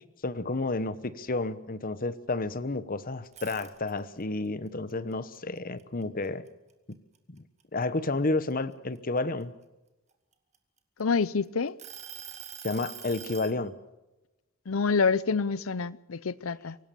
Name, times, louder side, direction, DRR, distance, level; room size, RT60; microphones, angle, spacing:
voice 1, 0.2-6.4 6.9-7.0 7.3-7.4 7.7-9.5 12.6-13.7, left 2 dB, 45° left, 1.1 m, -31 dB
sound 1, 3.2-4.2 4.7-6.5 6.9-7.2 7.6-9.4 10.1-11.2 11.8-13.6, right 8 dB, 35° right, 2.1 m, -44 dB
voice 2, 11.0-11.7 14.7-16.8, left 5 dB, 75° left, 0.7 m, -27 dB
24.5 x 18.0 x 7.1 m
head